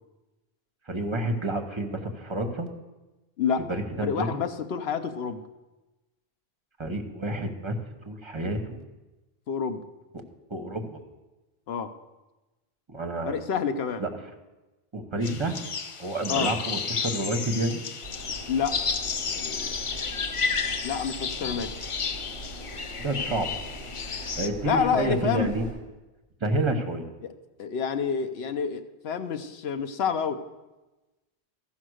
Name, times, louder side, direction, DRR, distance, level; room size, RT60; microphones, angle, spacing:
voice 1, 0.9-2.7 3.7-4.4 6.8-7.7 8.0-8.8 10.5-11.0 12.9-13.4 14.0-14.1 14.9-15.6 16.0-17.8 21.4-21.7 23.0-23.6 24.4-25.6 26.4-27.0, right 1 dB, 30° right, 4 dB, 1.1 m, -29 dB
voice 2, 4.0-5.4 9.5-9.8 11.7-11.9 13.3-14.0 16.3-16.5 18.5-18.8 19.3-19.8 20.8-21.7 24.6-25.5 27.2-27.3 27.6-30.4, left 6 dB, 85° left, 8 dB, 1.0 m, -28 dB
sound 1, 15.2-24.5, left 5 dB, 45° left, 0.4 m, -32 dB
sound 2, 18.0-25.7, right 1 dB, 60° left, 3.5 m, -41 dB
13.5 x 5.7 x 6.3 m, 1.1 s
omnidirectional pair, 1.0 m